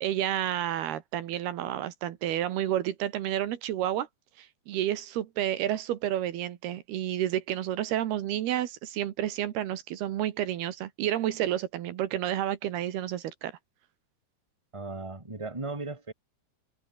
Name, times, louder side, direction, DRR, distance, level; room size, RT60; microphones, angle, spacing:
voice 1, 0.0-4.1 4.4-13.5, right 12 dB, 75° right, 3.4 m, -30 dB
voice 2, 14.7-16.1, right 3 dB, 10° right, 3.2 m, -36 dB
omnidirectional pair, 4.6 m